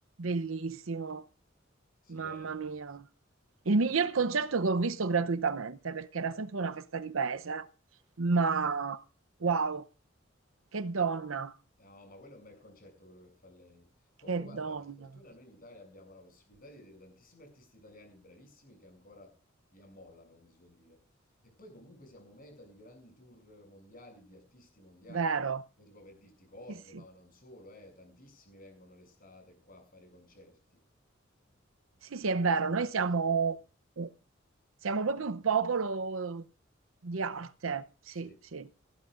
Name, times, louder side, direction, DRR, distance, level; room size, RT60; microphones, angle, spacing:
voice 1, 0.2-1.3 2.1-3.1 3.7-7.7 8.2-9.0 9.4-9.9 10.7-11.5 14.3-14.9 25.1-25.6 32.0-33.6 34.0-34.1 34.8-36.4 37.0-38.7, right 4 dB, 90° right, 0.7 m, -30 dB
voice 2, 2.0-2.5 11.8-13.9 14.2-19.4 19.7-21.0 21.4-25.3 25.8-30.8 32.2-32.7 38.1-38.4, left 1 dB, 45° left, 7.2 m, -54 dB
20.0 x 14.5 x 2.5 m
head